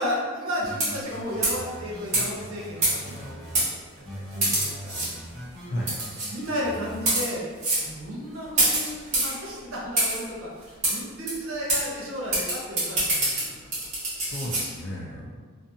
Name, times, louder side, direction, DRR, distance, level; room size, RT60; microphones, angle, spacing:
voice 1, 0.0-3.4 4.0-5.0 6.3-7.4 7.8-13.6 15.0-15.3, equal, 75° right, -4 dB, 0.8 m, -33 dB
sound 1, 0.6-3.6 4.0-7.1, equal, ahead, 0.5 m, -41 dB
sound 2, 0.7-1.1 1.4-1.6 2.1-2.2 2.8-3.2 3.5-3.7 4.4-5.1 5.9-6.3 6.9-7.3 7.6-7.8 8.6-9.3 10.0-10.2 10.8-10.9 11.3-11.4 11.7-11.8 12.3-14.6, right 2 dB, 35° right, 0.9 m, -24 dB
voice 2, 13.5-15.3, left 1 dB, 55° left, -5 dB, 0.5 m, -34 dB
2.6 x 2.5 x 2.6 m, 1.5 s
head